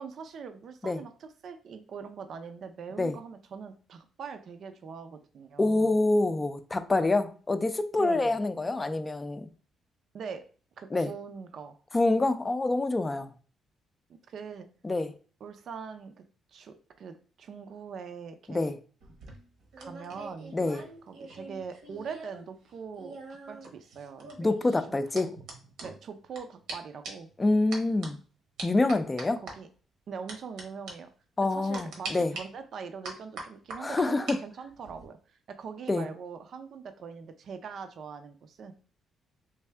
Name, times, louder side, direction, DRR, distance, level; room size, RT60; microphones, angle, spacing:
voice 1, 0.0-5.9 8.0-8.4 10.1-10.4 10.8-11.7 14.1-14.7 15.4-16.1 16.5-18.7 19.8-20.5 21.1-24.3 25.1-25.3 25.8-27.3 29.4-29.7 30.1-31.1 31.5-35.2 35.6-38.7, right 6 dB, 60° right, 0.5 m, -42 dB
voice 2, 5.6-9.5 10.9-11.1 11.9-13.3 14.8-15.1 18.5-18.8 20.5-20.8 24.4-25.3 27.4-28.2 28.6-29.4 31.4-32.3 33.8-34.4 35.9-36.1, left 2 dB, 20° left, 0.4 m, -26 dB
sound 1, 19.0-22.4 22.7-26.4 26.7-26.8 27.0-27.3 27.7-28.1 28.6-29.5 30.3-30.6 30.9-31.0 31.7-32.4 33.0-34.4 34.7-35.1, right 3 dB, 85° right, 1.0 m, -42 dB
3.3 x 2.6 x 3.3 m
cardioid pair, 90°, 0 cm